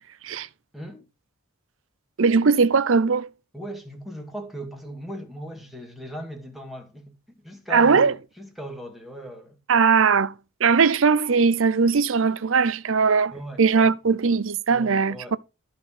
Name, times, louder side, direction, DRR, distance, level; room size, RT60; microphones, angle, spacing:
voice 1, 0.7-1.0 3.5-9.6 13.3-14.0 14.7-15.4, right 1 dB, ahead, 1.9 m, -38 dB
voice 2, 2.2-3.3 7.7-8.1 9.7-10.3 10.6-13.3 13.6-15.4, right 5 dB, 65° right, 0.6 m, -19 dB
13.0 x 4.4 x 5.7 m
head